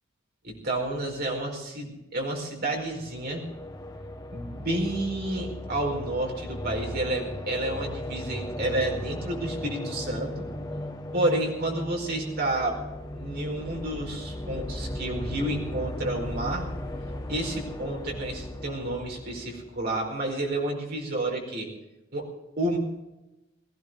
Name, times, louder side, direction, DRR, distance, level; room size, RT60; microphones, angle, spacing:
voice 1, 0.4-3.4 4.3-10.4 11.1-12.8 13.1-16.7 17.3-21.7 22.1-22.3 22.6-22.8, right 1 dB, 55° right, 0 dB, 4.8 m, -30 dB
sound 1, 2.9-19.9, left 1 dB, 20° left, 1.3 m, -36 dB
19.0 x 16.0 x 3.9 m, 0.99 s
head